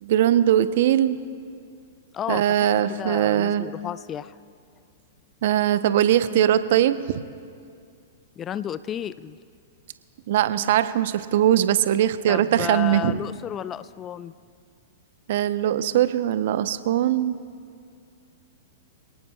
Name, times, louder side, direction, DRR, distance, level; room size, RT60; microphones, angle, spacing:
voice 1, 0.0-1.2 2.3-3.7 5.4-7.2 10.3-13.2 15.3-17.4, right 11 dB, 55° right, 13 dB, 0.6 m, -21 dB
voice 2, 2.1-2.6 3.0-4.4 8.4-9.4 12.3-14.3, left 9 dB, 25° left, 16 dB, 0.4 m, -32 dB
26.5 x 18.0 x 2.2 m, 2.3 s
figure-of-eight pair, 105°, 0 cm